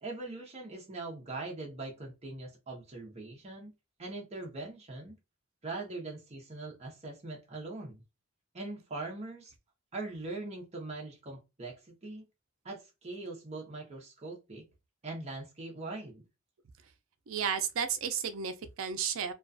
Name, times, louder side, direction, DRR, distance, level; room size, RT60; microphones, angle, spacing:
voice 1, 0.0-3.7 4.0-5.1 5.6-8.0 8.5-9.5 9.9-12.2 12.6-14.7 15.0-16.2, right 2 dB, 30° right, 0.7 m, -41 dB
voice 2, 17.3-19.3, right 7 dB, 85° right, 0.4 m, -33 dB
2.3 x 2.3 x 2.5 m
head